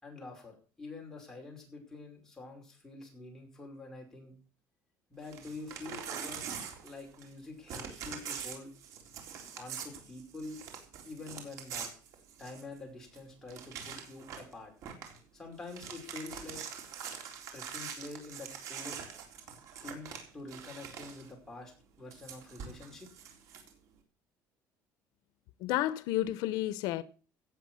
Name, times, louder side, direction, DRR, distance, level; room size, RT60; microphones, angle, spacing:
voice 1, 0.0-4.3 5.1-6.4 6.8-8.7 9.6-10.6 11.0-11.9 12.4-14.7 15.3-16.6 17.5-19.0 19.8-23.1, left 3 dB, 10° left, 5.2 m, -46 dB
Crumpling crinkling / Tearing, 5.2-7.4 7.7-12.8 13.1-13.2 13.5-14.5 14.8-15.2 15.5-21.3 22.1-23.7, right 7 dB, 55° right, 3.7 m, -44 dB
voice 2, 25.6-27.0, left 14 dB, 80° left, 0.8 m, -31 dB
17.0 x 8.1 x 6.3 m
cardioid pair, 170°, 7 cm